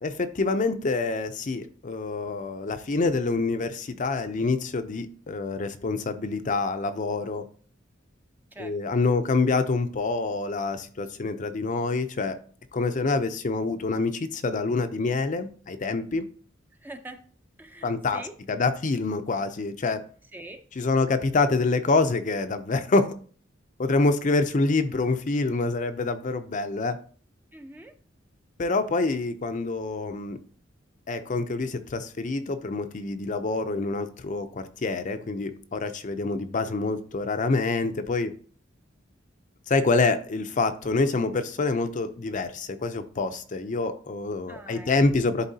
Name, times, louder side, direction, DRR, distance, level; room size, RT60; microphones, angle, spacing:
voice 1, 0.0-7.5 8.6-12.4 12.7-16.3 17.8-20.0 20.8-23.1 23.8-27.0 28.6-30.4 31.1-38.4 39.7-45.5, left 3 dB, 40° left, 0.5 m, -26 dB
voice 2, 16.8-17.2 17.6-18.4 20.3-20.6 27.5-27.9 44.5-44.9, right 1 dB, 10° right, 0.5 m, -43 dB
11.0 x 3.7 x 2.7 m
head